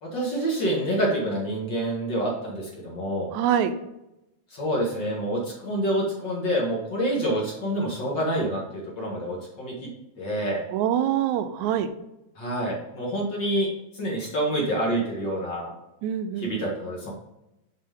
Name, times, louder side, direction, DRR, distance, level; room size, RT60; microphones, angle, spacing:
voice 1, 0.0-3.3 4.5-9.7 10.2-10.6 12.4-13.7 13.9-15.7 16.4-17.1, right 1 dB, 45° left, -3 dB, 2.1 m, -27 dB
voice 2, 3.3-3.7 10.7-11.9 16.0-16.6, right 10 dB, 90° right, 9 dB, 2.0 m, -25 dB
7.5 x 6.0 x 3.7 m, 0.91 s
omnidirectional pair, 3.3 m